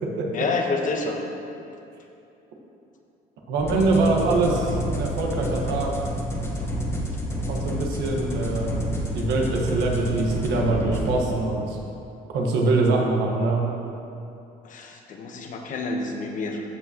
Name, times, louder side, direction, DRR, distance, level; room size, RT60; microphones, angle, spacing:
voice 1, 0.3-1.2 14.6-16.6, left 3 dB, 50° left, 2 dB, 1.1 m, -28 dB
voice 2, 3.5-5.9 7.5-11.8 12.3-13.7, right 3 dB, 85° right, 0 dB, 1.5 m, -24 dB
sound 1, 3.6-11.4, equal, 15° left, 1.3 m, -29 dB
15.0 x 6.1 x 3.0 m, 2.8 s
cardioid pair, 110°, 17 cm